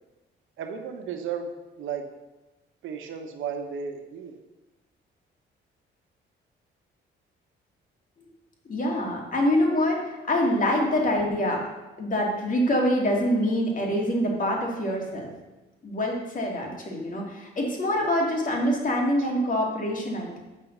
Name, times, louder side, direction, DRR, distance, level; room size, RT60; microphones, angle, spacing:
voice 1, 0.6-2.0 2.8-4.4 18.0-18.1, right 6 dB, 80° right, 5 dB, 1.1 m, -34 dB
voice 2, 8.7-11.6 12.0-15.3 15.8-20.4, left 1 dB, 40° left, 0 dB, 2.7 m, -25 dB
7.7 x 6.0 x 6.7 m, 1.1 s
cardioid pair, 90°, 20 cm